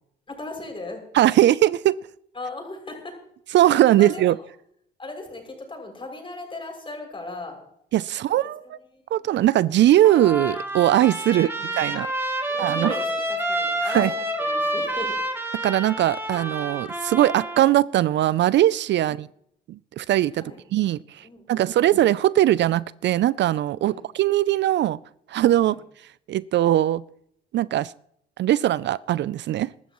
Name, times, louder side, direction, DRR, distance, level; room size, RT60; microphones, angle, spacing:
voice 1, 0.3-1.0 2.3-3.1 3.5-4.2 5.0-7.6 8.1-9.4 11.3-11.8 12.4-15.2 19.0-19.2 20.3-20.6 21.2-21.9 23.9-24.0 25.6-25.7, left 2 dB, 25° left, 6.4 m, -38 dB
voice 2, 1.1-2.0 3.5-4.4 7.9-8.8 9.1-11.5 11.8-12.1 12.6-13.0 13.8-14.1 15.6-19.3 19.7-20.4 20.7-25.0 25.3-25.8 26.3-27.0 27.5-27.9 28.4-29.7, right 13 dB, 65° right, 0.4 m, -20 dB
Trumpet, 10.0-17.6, right 1 dB, 10° right, 2.7 m, -28 dB
23.0 x 13.0 x 3.0 m
cardioid pair, 90°, 20 cm